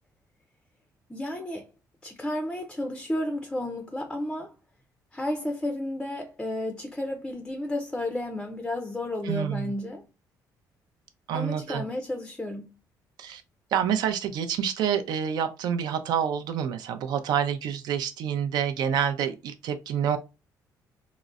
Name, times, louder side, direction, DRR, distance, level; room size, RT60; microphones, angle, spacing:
voice 1, 1.1-1.7 2.0-4.5 5.1-10.1 11.3-12.7, left 1 dB, 10° left, 0.4 m, -32 dB
voice 2, 9.2-9.7 11.3-11.8 13.2-13.4 13.7-20.2, right 8 dB, 80° right, 0.5 m, -27 dB
3.8 x 2.1 x 2.3 m
cardioid pair, 140°, 7 cm